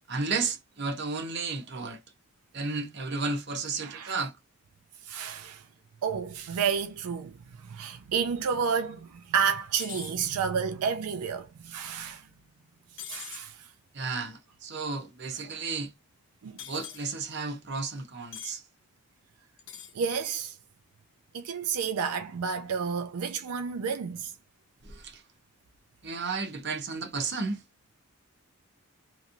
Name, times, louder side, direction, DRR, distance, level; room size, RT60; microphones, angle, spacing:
voice 1, 0.0-2.0 2.5-4.3 13.9-15.9 16.7-18.6 24.8-25.2 26.0-27.6, right 4 dB, 50° right, 0.7 m, -33 dB
voice 2, 3.8-4.1 5.0-5.6 6.0-7.3 7.6-12.3 13.1-13.7 15.5-15.6 16.4-16.6 19.9-20.6 21.3-24.3, right 6 dB, 90° right, 0.4 m, -30 dB
sound 1, 9.8-10.2 13.0-13.5 16.6-17.0 18.3-18.6 19.6-20.0, left 9 dB, 55° left, 0.7 m, -42 dB
2.9 x 2.5 x 2.5 m
head